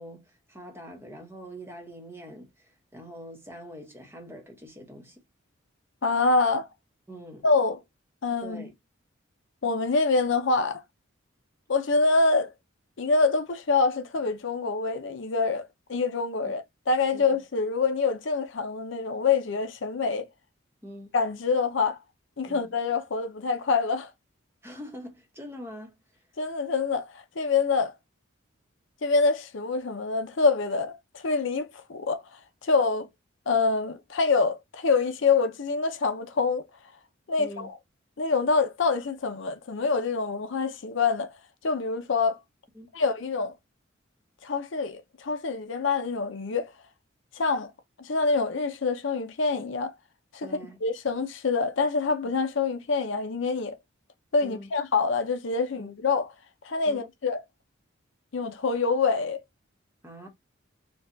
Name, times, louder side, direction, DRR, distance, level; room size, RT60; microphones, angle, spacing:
voice 1, 0.0-5.2 7.1-7.5 8.4-8.7 16.4-16.5 17.1-17.2 20.8-21.1 22.5-22.7 24.6-26.0 37.4-37.7 42.7-43.0 50.4-50.8 54.4-54.7 55.8-55.9 56.9-57.1 60.0-60.3, equal, 10° right, 0.9 m, -44 dB
voice 2, 6.0-6.7 7.4-7.8 8.2-8.7 9.6-10.8 11.7-12.5 13.0-20.2 21.1-22.0 22.4-24.1 26.4-27.9 29.0-32.2 32.6-33.1 33.5-36.6 37.3-37.7 38.2-41.3 41.6-42.4 42.9-43.5 44.4-46.7 47.4-47.7 48.0-49.9 50.3-50.5 50.8-53.8 54.3-56.3 56.6-57.4 58.3-59.4, left 4 dB, 60° left, 0.6 m, -26 dB
4.6 x 2.3 x 2.6 m
head